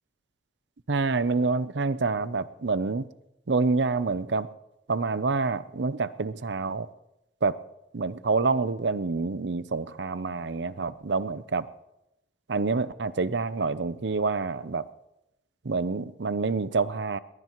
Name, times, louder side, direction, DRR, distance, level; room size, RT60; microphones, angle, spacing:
voice 1, 0.9-3.0 3.5-4.5 4.9-6.9 7.4-7.5 7.9-11.6 12.5-14.8 15.7-17.2, right 4 dB, 75° right, 15 dB, 0.7 m, -27 dB
21.5 x 20.5 x 3.1 m, 0.89 s
head